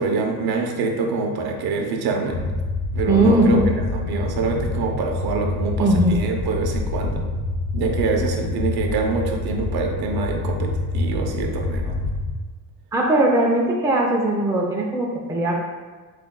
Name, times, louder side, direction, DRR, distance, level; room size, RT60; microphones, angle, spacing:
voice 1, 0.0-2.4 2.9-3.6 3.9-7.2 7.7-12.1, right 4 dB, 80° right, 2 dB, 0.8 m, -25 dB
sound 1, 2.3-12.3, left 2 dB, 65° left, 0.8 m, -26 dB
voice 2, 3.1-3.7 5.8-6.1 12.9-15.5, right 1 dB, 10° right, -3 dB, 0.6 m, -19 dB
7.8 x 2.7 x 2.3 m, 1.4 s
cardioid pair, 85°, 37 cm